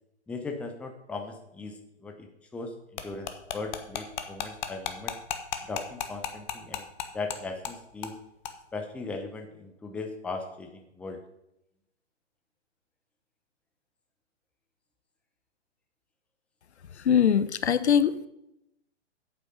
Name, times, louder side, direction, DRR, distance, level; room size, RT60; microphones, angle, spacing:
voice 1, 0.3-5.1 5.6-6.9 7.1-8.1 8.7-11.2, left 3 dB, 5° left, 4 dB, 0.6 m, -38 dB
sound 1, 3.0-7.4 7.6-7.7 8.0-8.2 8.4-8.5, left 9 dB, 40° left, 1.1 m, -33 dB
voice 2, 17.0-18.3, left 8 dB, 70° left, 15 dB, 0.8 m, -22 dB
8.5 x 8.2 x 5.6 m, 0.84 s
figure-of-eight pair, 120°, 35 cm